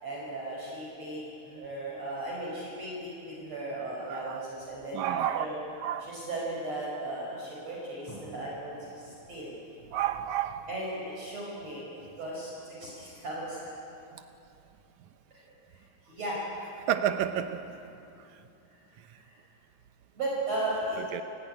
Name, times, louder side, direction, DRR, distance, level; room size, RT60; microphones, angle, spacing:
voice 1, 0.0-5.5 6.0-9.5 10.7-13.6 16.1-16.4 20.2-21.0, right 1 dB, 40° right, -5 dB, 6.0 m, -36 dB
voice 2, 4.1-4.4 4.9-5.5 5.8-6.1 9.9-10.7 16.9-17.6 21.1-21.2, right 11 dB, 90° right, 8 dB, 1.6 m, -30 dB
28.5 x 17.0 x 9.9 m, 2.7 s
omnidirectional pair, 4.5 m